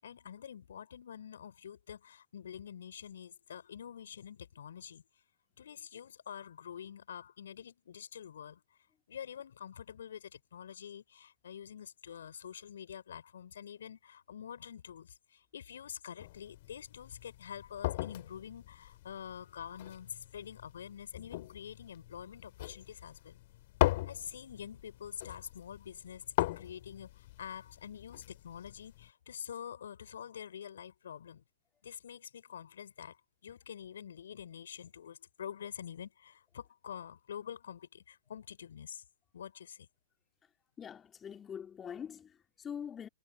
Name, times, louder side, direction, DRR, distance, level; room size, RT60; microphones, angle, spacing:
voice 1, 0.0-5.0 5.6-8.8 9.1-23.4 24.1-26.2 26.6-31.4 31.8-39.0 39.3-39.9, left 8 dB, 65° left, 5.0 m, -47 dB
sound 1, 16.2-29.1, left 17 dB, 50° left, 2.6 m, -39 dB
voice 2, 40.8-43.1, left 8 dB, 20° left, 3.2 m, -44 dB
figure-of-eight pair, 110°, 0 cm